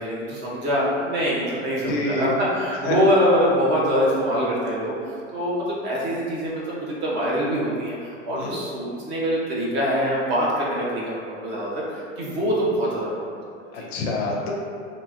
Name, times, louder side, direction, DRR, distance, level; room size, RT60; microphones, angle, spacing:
voice 1, 0.0-4.9 5.3-13.7, equal, 30° right, -5 dB, 0.6 m, -24 dB
voice 2, 1.9-2.2 2.8-3.0 8.3-8.6 13.7-14.5, left 2 dB, 55° left, -1 dB, 0.6 m, -27 dB
2.9 x 2.5 x 2.4 m, 2.3 s
hypercardioid pair, 115°, 38 cm